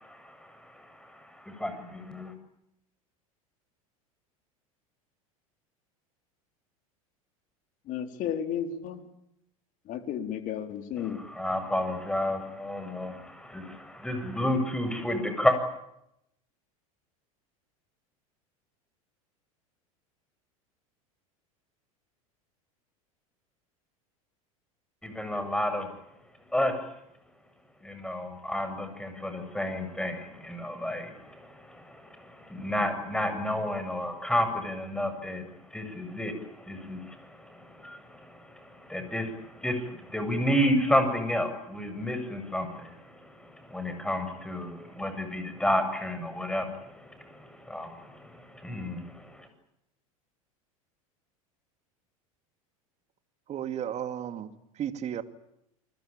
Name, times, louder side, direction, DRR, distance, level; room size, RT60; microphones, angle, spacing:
voice 1, 0.0-2.3 11.3-15.6 25.0-25.9 26.5-26.8 27.8-35.4 35.7-49.5, left 1 dB, 5° left, 7.7 m, -31 dB
voice 2, 7.9-9.1 9.9-11.2, left 9 dB, 50° left, 4.2 m, -33 dB
voice 3, 53.5-55.2, right 9 dB, 40° right, 2.4 m, -34 dB
29.5 x 21.0 x 9.0 m
hypercardioid pair, 85°, 18 cm